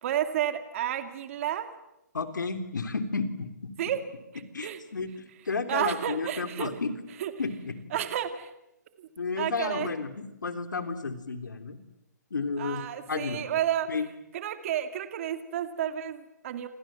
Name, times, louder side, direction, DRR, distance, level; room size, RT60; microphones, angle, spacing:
voice 1, 0.0-1.7 3.8-4.0 4.6-4.8 5.7-6.7 7.2-7.3 7.9-8.5 9.0-9.1 9.4-9.9 12.6-13.9 14.3-16.7, right 11 dB, 45° right, 9 dB, 2.3 m, -31 dB
voice 2, 2.1-3.7 4.5-5.1 5.5-6.9 7.4-7.8 9.2-11.8 12.3-13.4 13.9-14.1, left 4 dB, 90° left, 9 dB, 3.6 m, -32 dB
28.5 x 26.5 x 7.7 m, 0.89 s
hypercardioid pair, 145°, 10 cm